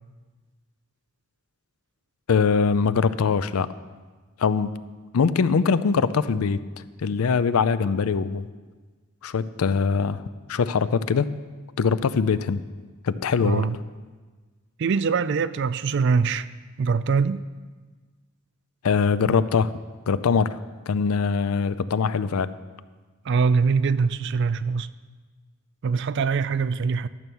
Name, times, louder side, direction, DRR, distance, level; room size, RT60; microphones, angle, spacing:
voice 1, 2.3-3.7 4.4-4.8 5.1-6.6 7.0-8.5 9.2-10.2 10.5-11.3 11.8-12.6 13.0-13.7 18.8-19.7 20.1-20.5 20.9-22.5, left 5 dB, 90° left, 0.5 m, -22 dB
voice 2, 13.4-13.8 14.8-16.5 16.8-17.4 23.3-24.9 25.8-27.1, right 5 dB, 55° right, 0.4 m, -23 dB
12.5 x 7.0 x 6.2 m
head